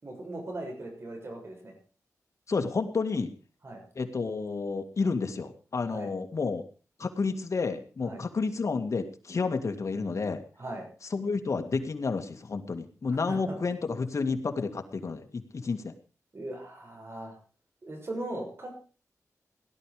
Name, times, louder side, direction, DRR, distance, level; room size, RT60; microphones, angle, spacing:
voice 1, 0.0-1.7 3.6-3.8 5.9-6.1 8.0-8.2 10.6-10.9 13.1-13.6 16.3-17.4 17.8-18.8, right 1 dB, 45° right, 2 dB, 6.6 m, -39 dB
voice 2, 2.5-3.3 4.0-6.6 7.0-10.4 11.1-15.9, left 4 dB, 60° left, 6 dB, 2.2 m, -30 dB
17.5 x 11.5 x 5.1 m, 0.38 s
wide cardioid pair, 75°, 6 cm